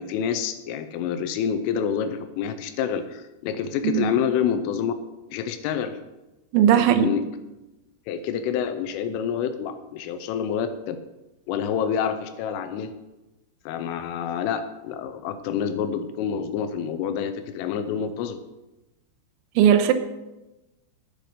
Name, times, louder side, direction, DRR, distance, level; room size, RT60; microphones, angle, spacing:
voice 1, 0.0-4.9 5.3-6.0 6.7-7.2 8.1-11.0 11.5-13.0 13.7-18.4, left 8 dB, 90° left, 3.3 m, -27 dB
voice 2, 6.5-7.1 19.6-19.9, right 9 dB, 80° right, 3.1 m, -18 dB
10.5 x 8.9 x 6.7 m
omnidirectional pair, 5.7 m